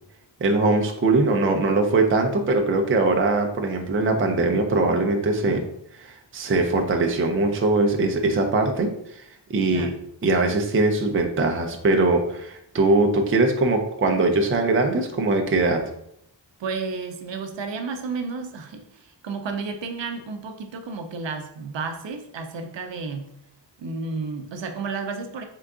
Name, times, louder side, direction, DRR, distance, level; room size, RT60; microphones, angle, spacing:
voice 1, 0.4-5.6 6.0-8.9 9.5-9.9 10.2-15.8, right 2 dB, 30° right, 4 dB, 0.5 m, -21 dB
voice 2, 16.6-23.3 23.8-25.4, right 4 dB, 70° right, 6 dB, 0.6 m, -32 dB
3.7 x 3.4 x 3.7 m, 0.73 s
wide cardioid pair, 155°, 45 cm